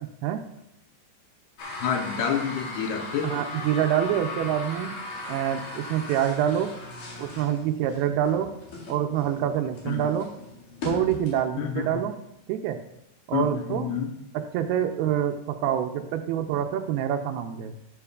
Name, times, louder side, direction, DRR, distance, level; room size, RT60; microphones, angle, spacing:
sound 1, 1.6-11.4, left 2 dB, 60° left, 3.5 m, -38 dB
voice 1, 1.8-3.3 9.9-10.0 11.6-12.0 13.3-14.1, left 7 dB, 80° left, 4 dB, 2.7 m, -28 dB
voice 2, 3.2-5.0 5.3-6.7 7.2-8.5 8.9-10.3 10.8-12.2 12.5-12.8 13.3-13.9 14.3-17.7, right 10 dB, 80° right, 6 dB, 2.4 m, -26 dB
12.5 x 11.0 x 2.4 m, 0.82 s
omnidirectional pair, 4.9 m